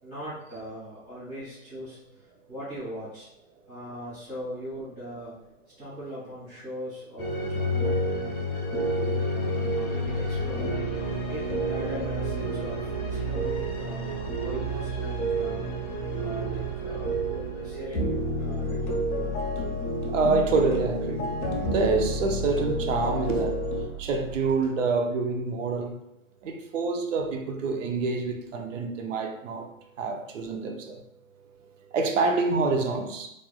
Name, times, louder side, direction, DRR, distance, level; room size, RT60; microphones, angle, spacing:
voice 1, 0.0-3.3 3.7-5.3 5.8-8.5 8.8-15.7 16.2-19.3, equal, 5° left, -20 dB, 0.4 m, -40 dB
sound 1, 7.2-23.9, right 1 dB, 75° left, 1.0 m, -29 dB
sound 2, 10.0-24.7, right 9 dB, 30° right, 1.0 m, -43 dB
voice 2, 20.1-23.6 24.0-26.0 26.4-29.7 30.0-31.0 31.9-33.3, right 4 dB, 60° right, 4 dB, 0.6 m, -27 dB
3.0 x 2.5 x 2.3 m, 0.81 s
hypercardioid pair, 165°, 43 cm